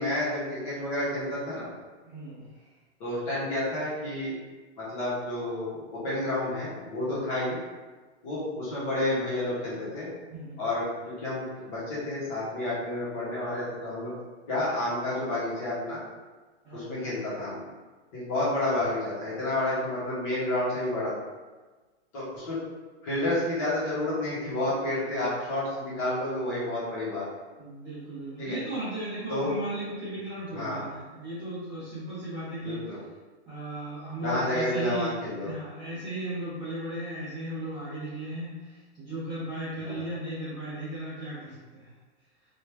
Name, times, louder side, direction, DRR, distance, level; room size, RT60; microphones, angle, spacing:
voice 1, 0.0-1.7 3.0-4.3 4.8-7.6 8.2-10.1 10.6-14.1 14.5-16.0 16.7-17.6 18.1-21.1 22.1-22.6 23.0-27.2 28.4-28.6 29.3-29.5 30.5-30.8 32.6-33.0 34.2-35.5 39.8-40.1, left 1 dB, 30° left, -9 dB, 1.4 m, -30 dB
voice 2, 2.0-2.4 7.1-7.2 10.3-10.6 16.6-17.0 27.6-32.8 33.5-41.9, right 1 dB, 10° right, -16 dB, 1.0 m, -36 dB
3.1 x 3.0 x 3.5 m, 1.3 s
hypercardioid pair, 170°, 34 cm